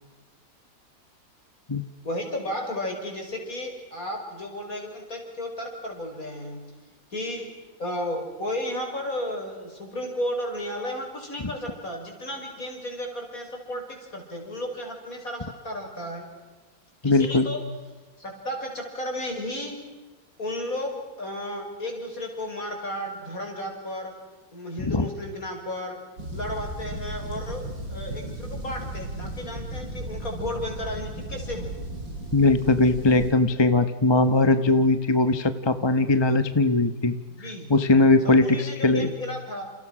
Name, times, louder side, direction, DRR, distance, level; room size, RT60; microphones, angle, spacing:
voice 1, 2.0-6.6 7.1-7.5 7.8-16.3 17.0-17.6 18.2-19.8 20.4-24.2 24.5-26.0 26.3-31.8 37.3-37.7 38.2-39.7, left 1 dB, 45° left, 2 dB, 6.5 m, -33 dB
voice 2, 17.0-17.5 24.8-25.0 32.3-37.1 37.7-39.1, left 2 dB, 20° left, 10 dB, 0.9 m, -20 dB
sound 1, 26.2-33.3, right 1 dB, 80° right, 8.1 m, -35 dB
29.5 x 29.5 x 6.2 m, 1.3 s
omnidirectional pair, 2.0 m